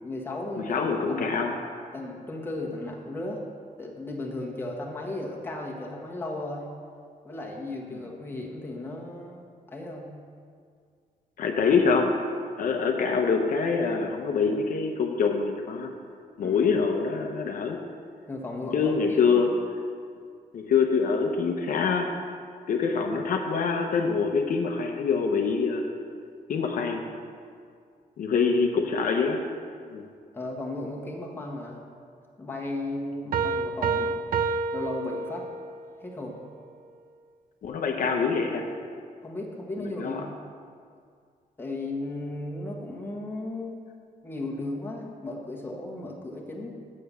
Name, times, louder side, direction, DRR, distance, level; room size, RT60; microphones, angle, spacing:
voice 1, 0.0-1.3 1.9-3.4 3.8-6.7 7.2-10.2 16.4-16.7 18.3-19.4 30.3-31.8 32.4-34.2 34.7-35.5 36.0-36.4 39.2-40.3 41.6-43.7 44.2-46.7, left 2 dB, 15° left, -2 dB, 1.2 m, -35 dB
voice 2, 0.6-1.5 11.4-12.1 12.6-15.9 16.4-17.8 18.7-19.5 20.5-22.1 22.7-25.8 26.5-27.0 28.2-29.4 29.9-30.1 37.6-38.7 39.8-40.2, left 5 dB, 60° left, 2 dB, 0.8 m, -25 dB
sound 1, 33.3-35.8, right 4 dB, 70° right, 0.5 m, -28 dB
7.5 x 6.7 x 6.8 m, 2.2 s
wide cardioid pair, 150°, 15 cm